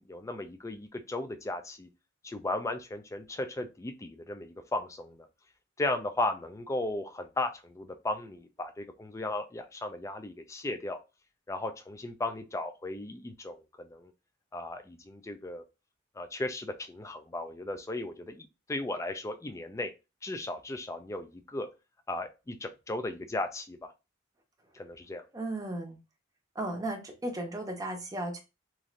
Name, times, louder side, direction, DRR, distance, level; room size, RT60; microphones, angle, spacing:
voice 1, 0.0-1.9 2.2-5.3 5.8-11.0 11.5-14.1 14.5-15.6 16.2-19.9 20.2-21.7 22.1-23.9 24.7-25.2, left 2 dB, 15° left, 8 dB, 0.3 m, -36 dB
voice 2, 25.3-26.0 26.6-28.4, right 1 dB, 20° right, 2 dB, 0.7 m, -35 dB
3.1 x 2.6 x 2.5 m, 0.27 s
head